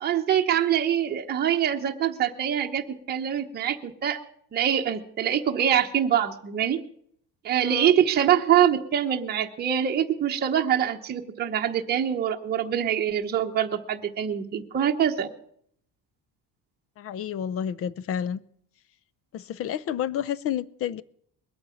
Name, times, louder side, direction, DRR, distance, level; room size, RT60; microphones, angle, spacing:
voice 1, 0.0-4.2 4.5-6.8 7.4-15.3, right 9 dB, 25° right, 1.0 m, -24 dB
voice 2, 7.6-7.9 17.0-18.4 19.3-21.0, left 9 dB, 35° left, 0.5 m, -30 dB
21.0 x 8.8 x 7.1 m
cardioid pair, 175°, 40 cm